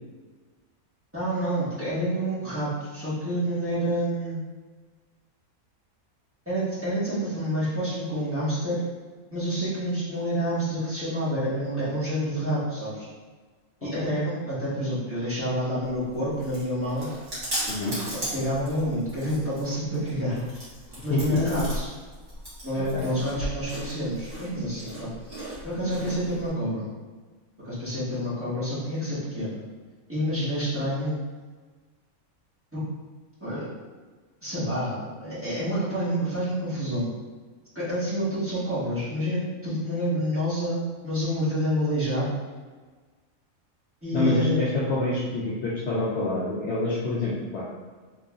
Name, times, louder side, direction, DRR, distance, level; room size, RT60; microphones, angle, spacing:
voice 1, 1.1-4.4 6.4-8.8 9.3-13.1 13.8-17.1 18.1-20.4 21.0-21.9 22.6-25.1 25.6-26.9 27.6-29.6 30.1-31.2 32.7-32.8 33.4-33.7 34.4-37.1 37.7-42.3 44.0-44.6, equal, 10° right, -12 dB, 1.3 m, -28 dB
Chewing mastication, 15.8-26.5, equal, 50° right, 1.9 m, -37 dB
voice 2, 44.1-47.8, left 2 dB, 60° left, -7 dB, 0.8 m, -27 dB
3.7 x 3.1 x 2.4 m, 1.4 s
omnidirectional pair, 1.5 m